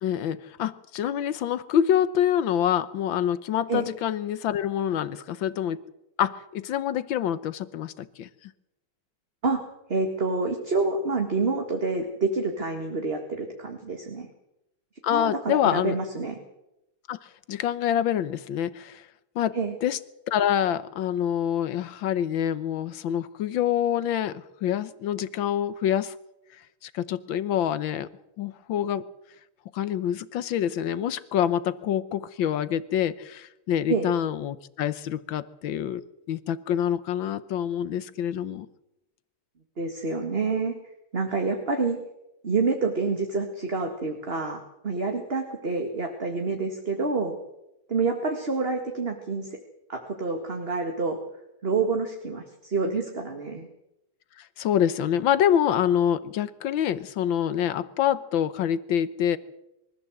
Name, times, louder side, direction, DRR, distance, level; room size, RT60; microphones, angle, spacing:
voice 1, 0.0-5.8 6.2-8.3 15.0-16.0 17.1-17.2 17.5-19.0 19.3-20.0 20.3-26.1 26.8-28.1 28.4-29.0 29.7-38.7 54.4-59.4, left 10 dB, 70° left, 15 dB, 1.5 m, -26 dB
voice 2, 9.9-14.3 15.1-16.4 19.5-19.7 33.9-34.1 39.8-40.7 41.1-42.0 42.4-47.4 47.9-49.5 49.9-51.2 51.6-53.7, right 3 dB, 30° right, 4 dB, 1.9 m, -27 dB
23.5 x 14.5 x 7.9 m, 0.87 s
omnidirectional pair, 2.3 m